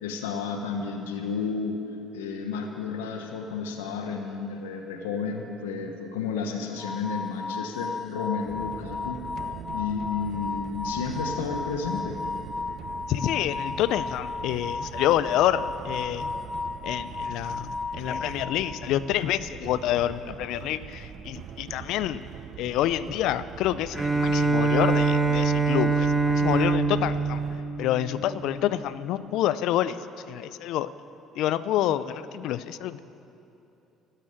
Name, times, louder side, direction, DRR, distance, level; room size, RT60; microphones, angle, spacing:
voice 1, 0.0-1.8 2.1-9.2 9.7-12.2, left 5 dB, 90° left, 4 dB, 1.1 m, -32 dB
sound 1, 6.8-19.0, left 4 dB, 30° left, 0.6 m, -34 dB
sound 2, 8.4-27.6, right 8 dB, 60° right, 0.8 m, -42 dB
voice 2, 13.1-16.3 16.8-22.2 22.6-27.4 27.8-30.9 31.4-33.0, left 12 dB, 70° left, 16 dB, 0.5 m, -27 dB
Bowed string instrument, 23.9-28.7, right 4 dB, 15° right, 1.2 m, -24 dB
12.5 x 12.0 x 8.9 m, 2.9 s
hypercardioid pair, 65°, 0 cm